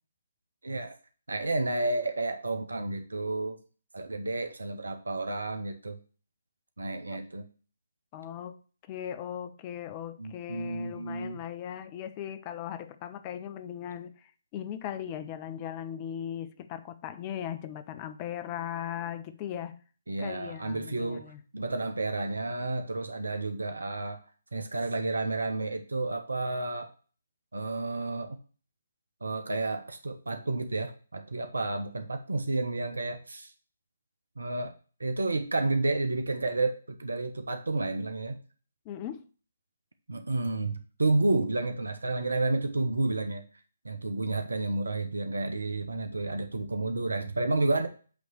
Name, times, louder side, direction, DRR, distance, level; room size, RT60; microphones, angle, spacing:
voice 1, 0.6-1.0 1.3-3.6 3.9-6.0 6.8-7.4 10.2-11.4 20.1-21.3 21.5-24.2 24.5-26.9 27.5-28.4 29.2-33.5 34.4-34.7 35.0-38.4 40.1-43.4 43.8-47.9, right 2 dB, 70° right, 0.9 m, -31 dB
voice 2, 8.1-8.6 8.9-14.1 14.5-19.8 20.2-21.4 38.9-39.2, left 10 dB, 25° left, 0.6 m, -38 dB
8.3 x 3.2 x 6.4 m
figure-of-eight pair, 140°, 0 cm